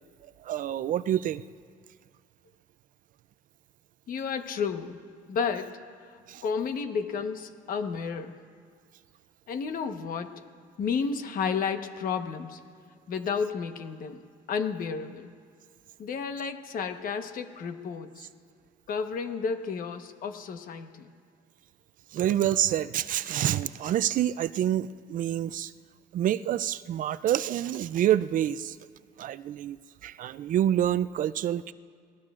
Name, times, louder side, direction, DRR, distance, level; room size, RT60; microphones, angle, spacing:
voice 1, 0.4-1.4 6.3-6.4 22.1-25.7 26.1-28.8 29.2-29.8 30.0-31.7, right 11 dB, 55° right, 16 dB, 0.4 m, -27 dB
voice 2, 4.1-5.0 5.3-5.8 6.4-8.4 9.5-10.4 10.8-12.6 13.1-14.2 14.5-15.3 16.0-18.3 18.9-21.1, left 6 dB, 55° left, 7 dB, 1.2 m, -32 dB
28.0 x 19.0 x 2.5 m, 2.1 s
cardioid pair, 110°, 17 cm